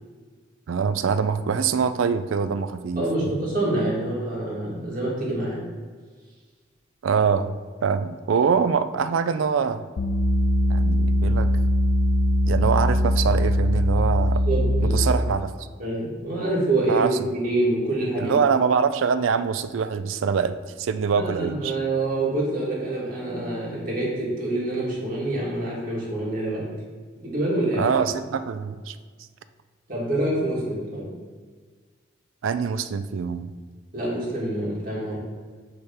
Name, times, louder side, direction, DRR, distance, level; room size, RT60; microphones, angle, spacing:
voice 1, 0.7-3.0 7.0-7.6 7.8-9.8 10.7-11.5 12.5-14.4 14.8-15.5 16.9-17.2 18.2-21.7 27.8-29.0 32.4-33.5, right 6 dB, 85° right, 12 dB, 0.4 m, -24 dB
voice 2, 3.0-5.7 14.5-15.0 15.8-18.4 21.2-26.8 27.2-27.9 29.9-31.1 33.9-35.2, right 2 dB, 45° right, -5 dB, 2.0 m, -26 dB
sound 1, 10.0-15.3, equal, 75° left, 0.5 m, -21 dB
6.8 x 3.5 x 5.6 m, 1.6 s
head